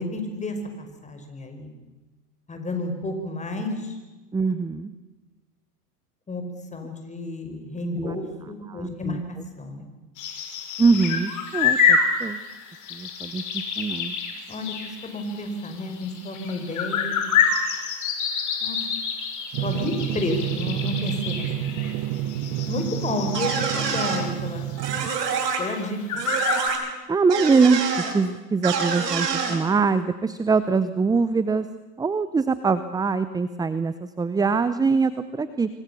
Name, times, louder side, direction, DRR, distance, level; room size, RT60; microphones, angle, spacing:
voice 1, 0.0-1.7 2.5-4.0 6.3-6.4 6.7-9.9 14.5-17.3 18.6-18.8 19.6-21.5 21.7-22.2 22.7-24.7 25.6-26.2, left 2 dB, 15° left, 5 dB, 5.2 m, -31 dB
voice 2, 4.3-4.9 7.9-8.2 8.7-9.2 10.8-12.4 12.9-14.1 27.1-27.8 28.1-31.7 32.0-35.7, right 4 dB, 10° right, 13 dB, 0.7 m, -23 dB
sound 1, 10.2-24.5 24.8-24.9 25.3-25.4 25.7-26.7, left 6 dB, 40° left, 5.7 m, -27 dB
Drum, 19.5-25.1, right 12 dB, 45° right, 1.4 m, -29 dB
sound 2, 23.3-24.2 24.8-25.6 26.2-26.8 27.3-28.1 28.6-29.6, right 6 dB, 80° right, 6.0 m, -26 dB
26.5 x 24.5 x 7.0 m, 1.2 s
hypercardioid pair, 115°, 48 cm